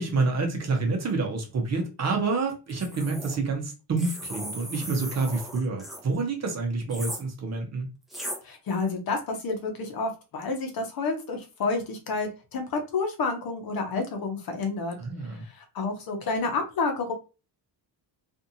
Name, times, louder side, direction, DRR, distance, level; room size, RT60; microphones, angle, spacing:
voice 1, 0.0-7.9 15.0-15.4, right 3 dB, 35° right, 0.8 m, -28 dB
sound 1, 2.7-3.4 4.0-6.0 6.9-7.2 8.1-8.4, equal, ahead, 0.8 m, -37 dB
voice 2, 8.4-15.0 15.6-17.1, left 3 dB, 50° left, 0.9 m, -29 dB
2.6 x 2.5 x 2.7 m
cardioid pair, 140°, 44 cm